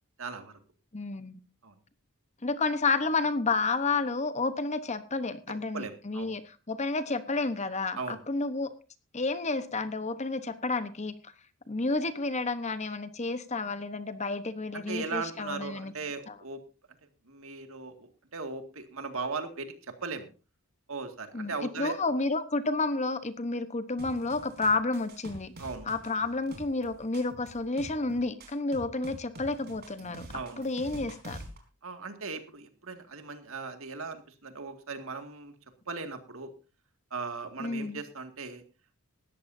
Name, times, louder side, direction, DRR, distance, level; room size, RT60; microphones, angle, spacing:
voice 1, 0.2-0.5 1.6-1.7 5.7-6.3 8.0-8.2 14.7-16.6 17.3-20.3 20.9-22.0 25.6-25.9 30.3-30.7 31.8-35.5 35.9-36.5 37.1-38.6, right 4 dB, 70° right, 6 dB, 2.2 m, -38 dB
voice 2, 0.9-1.4 2.4-8.7 9.1-11.1 11.7-15.9 16.3-16.4 21.3-25.5 25.9-30.3 30.6-31.4 37.6-38.0, left 3 dB, 30° left, 11 dB, 1.1 m, -30 dB
sound 1, 24.0-31.6, right 1 dB, 50° right, 4.0 m, -46 dB
18.5 x 14.0 x 2.7 m, 0.31 s
head